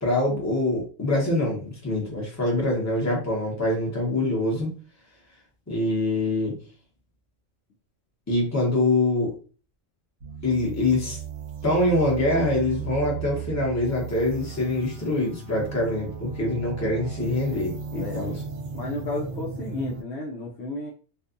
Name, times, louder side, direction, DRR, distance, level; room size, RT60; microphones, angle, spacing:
voice 1, 0.0-4.7 5.7-6.6 8.3-9.3 10.4-11.2 11.6-18.4, left 2 dB, 15° left, -3 dB, 0.8 m, -24 dB
sound 1, 10.2-20.0, right 6 dB, 80° right, 1.0 m, -36 dB
voice 2, 17.9-18.3 18.7-20.9, left 2 dB, 65° left, -1 dB, 0.7 m, -32 dB
2.6 x 2.3 x 2.4 m, 0.36 s
omnidirectional pair, 1.3 m